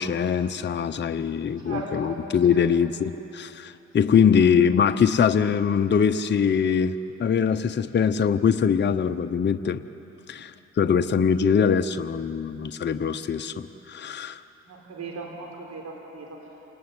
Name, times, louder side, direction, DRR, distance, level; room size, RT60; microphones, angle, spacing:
voice 1, 0.0-9.8 10.3-14.4, left 7 dB, 35° left, 8 dB, 0.8 m, -23 dB
voice 2, 1.7-2.1 2.5-2.6 4.3-4.5 14.7-16.3, right 3 dB, 60° right, 0 dB, 5.1 m, -37 dB
27.5 x 19.0 x 9.7 m, 2.9 s
cardioid pair, 90°, 30 cm